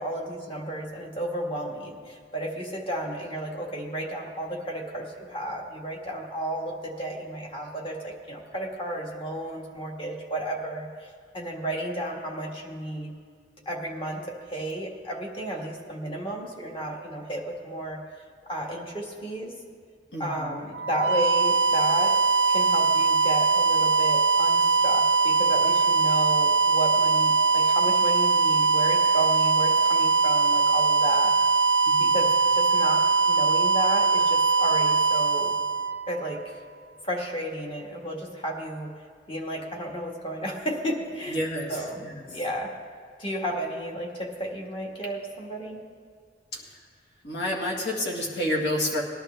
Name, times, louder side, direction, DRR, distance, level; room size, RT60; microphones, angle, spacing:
voice 1, 0.0-13.1 13.6-18.0 18.5-19.5 20.2-22.2 22.5-31.4 32.0-35.6 36.1-36.6 37.0-39.0 39.3-41.4 41.7-42.8 43.2-45.8, right 1 dB, 30° left, 0 dB, 1.6 m, -33 dB
voice 2, 20.1-20.6 31.9-32.1 41.3-41.8 42.0-42.1 46.5-46.8 47.2-49.0, left 1 dB, 65° left, -1 dB, 1.9 m, -29 dB
sound 1, 20.7-36.5, right 4 dB, 80° right, 0.5 m, -21 dB
20.0 x 11.5 x 3.4 m, 2.1 s
head